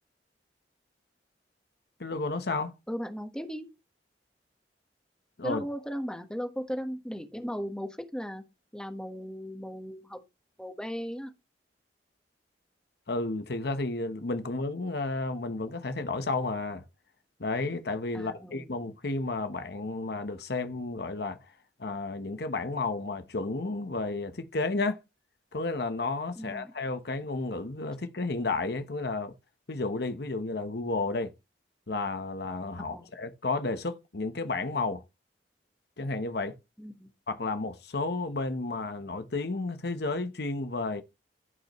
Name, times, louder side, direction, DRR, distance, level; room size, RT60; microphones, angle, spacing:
voice 1, 2.0-2.7 5.4-5.6 13.1-16.9 17.4-21.4 21.8-25.0 25.5-29.3 29.7-31.3 31.9-35.0 36.0-36.6 37.3-41.0, left 3 dB, 65° left, 1.0 m, -32 dB
voice 2, 2.9-3.7 5.4-8.4 8.7-10.2 10.6-11.3 18.1-18.7 26.4-26.7 32.9-33.1 36.8-37.1, equal, 5° left, 1.3 m, -37 dB
15.0 x 5.3 x 3.1 m
head